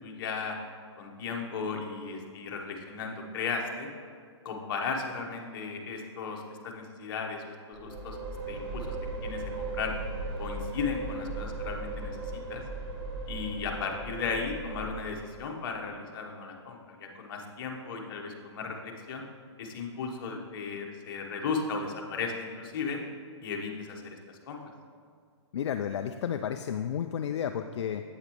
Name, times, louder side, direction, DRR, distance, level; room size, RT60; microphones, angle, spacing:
voice 1, 0.0-0.6 1.0-3.9 4.4-8.2 8.5-9.0 9.2-9.9 10.4-12.6 13.3-19.2 19.6-23.0 23.4-24.7, left 5 dB, 45° left, 1 dB, 1.1 m, -36 dB
sound 1, 7.7-15.6, right 2 dB, 35° right, 1.5 m, -37 dB
voice 2, 25.5-28.0, left 8 dB, 65° left, 7 dB, 0.4 m, -32 dB
8.2 x 8.0 x 3.1 m, 2.1 s
hypercardioid pair, 145°, 15 cm